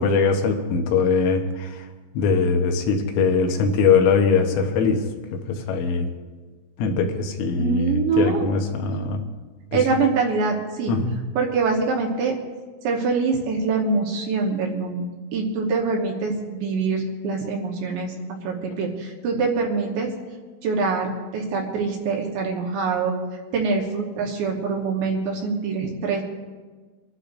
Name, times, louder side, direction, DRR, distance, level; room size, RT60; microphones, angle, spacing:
voice 1, 0.0-1.9 2.1-5.1 5.3-6.1 6.8-9.3 9.7-10.0 10.9-11.2, left 5 dB, 80° left, 3 dB, 3.7 m, -21 dB
voice 2, 7.6-8.5 9.7-10.9 11.4-12.4 12.8-18.1 18.4-20.1 20.6-23.2 23.5-26.2, right 4 dB, 70° right, 0 dB, 3.1 m, -24 dB
27.5 x 12.0 x 2.6 m, 1.4 s
omnidirectional pair, 5.8 m